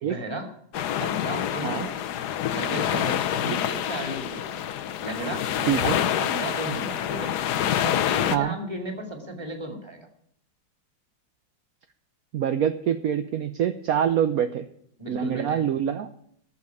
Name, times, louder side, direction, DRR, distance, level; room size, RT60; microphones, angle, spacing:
voice 1, 0.0-0.5 1.0-2.0 2.5-4.6 5.0-7.3 7.8-10.1 15.0-15.7, right 1 dB, 15° right, 4 dB, 2.6 m, -34 dB
sound 1, 0.7-8.4, left 10 dB, 75° left, 1.3 m, -27 dB
voice 2, 5.7-6.0 8.3-8.6 12.3-14.7 15.1-16.1, right 9 dB, 65° right, 9 dB, 1.1 m, -25 dB
15.5 x 7.3 x 8.3 m, 0.69 s
omnidirectional pair, 1.8 m